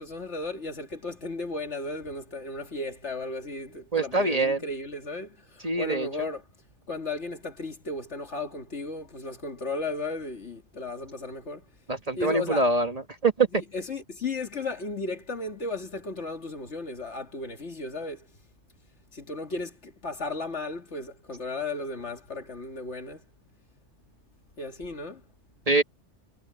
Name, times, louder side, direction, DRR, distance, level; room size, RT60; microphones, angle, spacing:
voice 1, 0.0-6.4 6.9-11.6 12.1-12.6 13.5-18.3 19.1-23.2 24.6-25.2, left 2 dB, 70° left, 2.6 m, -35 dB
voice 2, 3.9-4.6 5.6-6.3 11.9-13.6 25.7-25.8, right 3 dB, 35° right, 1.4 m, -24 dB
omnidirectional pair, 1.2 m